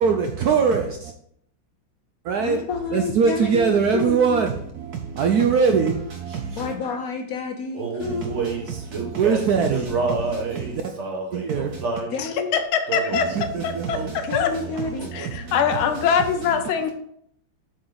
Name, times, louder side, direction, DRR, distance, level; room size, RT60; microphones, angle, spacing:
voice 1, 0.0-1.1 2.2-2.6 2.9-6.7 8.0-10.8 11.3-11.8 13.1-14.7 15.0-16.1 16.8-16.9, right 6 dB, 75° right, 0.9 m, -23 dB
voice 2, 2.4-4.4 6.5-8.4 12.1-12.6 14.3-15.1, left 4 dB, 65° left, 0.8 m, -30 dB
Male singing, 7.7-12.1 12.9-13.3 13.9-14.2 14.5-15.4, right 3 dB, 45° right, 1.1 m, -29 dB
voice 3, 12.2-13.3 13.6-14.5 15.1-16.9, left 7 dB, 85° left, 1.6 m, -23 dB
7.6 x 4.6 x 3.9 m
omnidirectional pair, 2.2 m